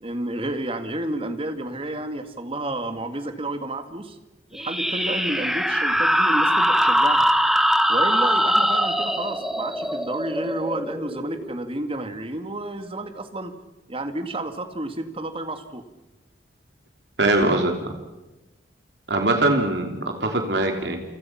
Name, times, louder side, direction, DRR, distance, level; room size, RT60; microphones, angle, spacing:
voice 1, 0.0-4.2 4.5-7.3 7.9-13.5 13.9-15.8, right 1 dB, 30° right, 8 dB, 2.1 m, -31 dB
sound 1, 4.5-11.8, equal, ahead, 1.4 m, -22 dB
voice 2, 17.2-17.9 19.1-21.0, right 2 dB, 70° right, 4 dB, 3.1 m, -22 dB
29.0 x 26.0 x 5.9 m, 1.1 s
head